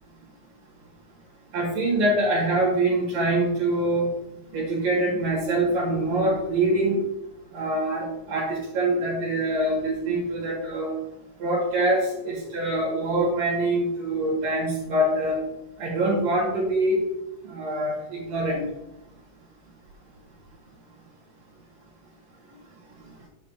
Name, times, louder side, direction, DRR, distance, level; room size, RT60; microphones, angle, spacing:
voice 1, 1.5-4.1 4.5-7.0 7.5-10.9 11.4-15.4 15.8-17.0 17.4-18.6, right 1 dB, 65° right, -4 dB, 3.4 m, -24 dB
9.0 x 8.6 x 2.4 m, 0.92 s
omnidirectional pair, 4.2 m